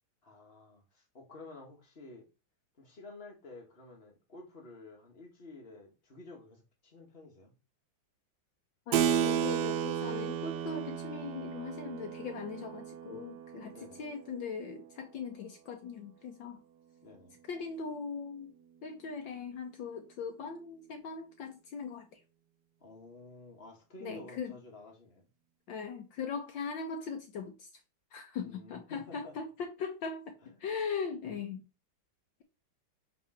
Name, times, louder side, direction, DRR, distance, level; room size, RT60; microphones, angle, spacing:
voice 1, 0.2-2.3 2.8-7.5 13.7-14.0 17.0-17.4 22.8-25.3 28.4-29.3 30.4-30.6, left 2 dB, 30° left, 2.0 m, -51 dB
voice 2, 8.9-16.6 17.5-18.5 18.8-22.2 24.0-24.6 25.7-27.7 28.1-31.6, left 5 dB, 70° left, 1.6 m, -40 dB
Keyboard (musical), 8.9-14.9, right 8 dB, 70° right, 1.0 m, -34 dB
5.7 x 4.0 x 5.8 m
omnidirectional pair, 2.2 m